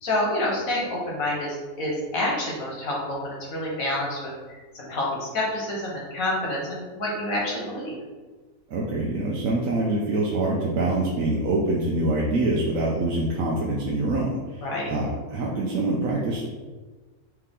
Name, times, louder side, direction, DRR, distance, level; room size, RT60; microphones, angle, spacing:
voice 1, 0.0-4.2 4.7-8.0 14.6-14.9, left 1 dB, 85° left, -4 dB, 1.7 m, -28 dB
voice 2, 8.7-16.5, right 2 dB, 80° right, -3 dB, 1.1 m, -25 dB
4.6 x 2.9 x 3.6 m, 1.3 s
omnidirectional pair, 1.4 m